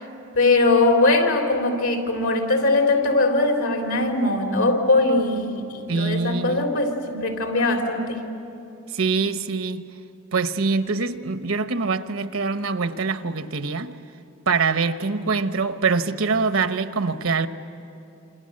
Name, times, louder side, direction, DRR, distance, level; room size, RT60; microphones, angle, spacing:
voice 1, 0.4-8.2, left 2 dB, 85° left, 3.7 m, -21 dB
voice 2, 5.9-6.7 8.9-9.8 10.3-13.9 14.5-17.5, right 4 dB, 75° right, 1.0 m, -24 dB
28.0 x 27.0 x 7.6 m
head